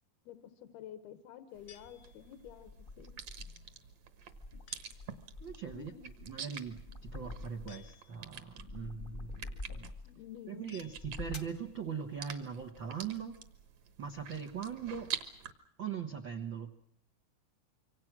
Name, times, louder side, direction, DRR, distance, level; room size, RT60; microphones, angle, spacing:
voice 1, 0.3-2.7 3.0-3.1 5.7-6.0 10.0-10.8, left 10 dB, 80° left, 10 dB, 3.1 m, -50 dB
sound 1, 1.5-15.5, right 8 dB, 55° right, 2.3 m, -48 dB
sound 2, 1.7-2.6 4.7-5.2 7.7-8.5 10.7-11.6, left 10 dB, 65° left, 1.6 m, -60 dB
sound 3, 1.8-3.7 4.2-7.9 8.3-10.2 10.8-11.6, left 2 dB, 30° left, 1.0 m, -47 dB
voice 2, 5.4-9.9 10.5-13.4 14.0-15.1 15.8-16.7, right 7 dB, 75° right, 5 dB, 1.0 m, -41 dB
26.5 x 24.5 x 6.1 m, 0.62 s
omnidirectional pair, 4.4 m